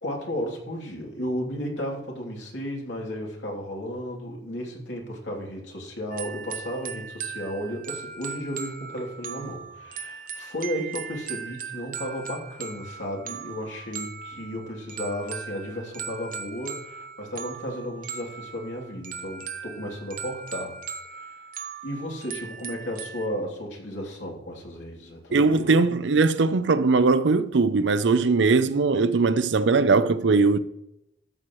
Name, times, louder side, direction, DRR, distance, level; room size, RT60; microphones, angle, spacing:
voice 1, 0.0-20.7 21.1-21.4 21.8-25.8, equal, 90° left, 3.0 m, -34 dB
sound 1, 6.1-23.3, right 7 dB, 50° right, 1.0 m, -38 dB
voice 2, 25.3-30.6, right 4 dB, 90° right, 0.6 m, -20 dB
13.0 x 7.7 x 3.1 m
head